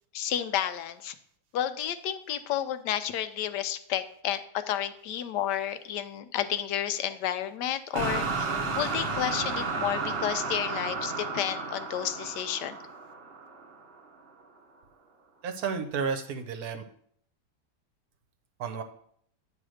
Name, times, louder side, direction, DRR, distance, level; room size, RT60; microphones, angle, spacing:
voice 1, 0.1-1.1 1.5-8.5 8.8-12.8, left 11 dB, 80° left, 11 dB, 1.2 m, -31 dB
sound 1, 7.9-14.0, right 4 dB, 50° right, 0.7 m, -32 dB
voice 2, 15.4-16.8 18.6-18.8, right 6 dB, 70° right, 7 dB, 1.1 m, -32 dB
8.9 x 3.3 x 6.3 m, 0.65 s
omnidirectional pair, 1.8 m